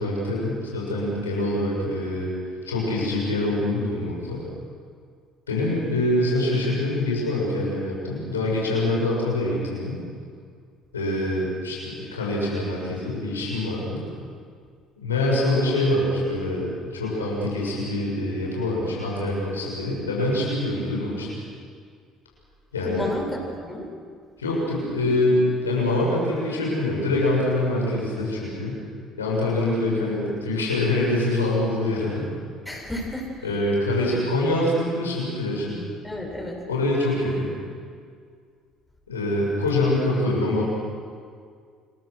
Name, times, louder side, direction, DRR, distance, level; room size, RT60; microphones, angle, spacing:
voice 1, 0.0-2.3 2.6-4.4 5.5-10.0 10.9-14.0 15.0-21.3 22.7-23.1 24.4-28.8 29.2-32.3 33.4-35.8 36.7-37.5 39.1-40.6, left 1 dB, 90° left, -4 dB, 6.6 m, -25 dB
voice 2, 22.8-23.9 32.6-33.5 36.0-36.6, left 1 dB, 5° left, -1 dB, 8.0 m, -32 dB
29.5 x 22.5 x 6.6 m, 2.1 s
hypercardioid pair, 55°, 0 cm